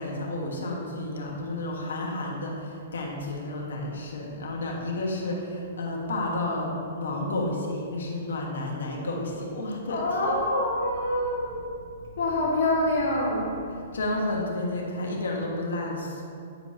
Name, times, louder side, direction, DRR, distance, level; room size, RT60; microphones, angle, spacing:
voice 1, 0.0-10.3 13.9-16.2, left 2 dB, 90° left, -1 dB, 1.3 m, -31 dB
voice 2, 9.9-13.6, left 1 dB, 65° left, -5 dB, 1.5 m, -26 dB
9.2 x 4.6 x 2.8 m, 2.5 s
hypercardioid pair, 145°, 0 cm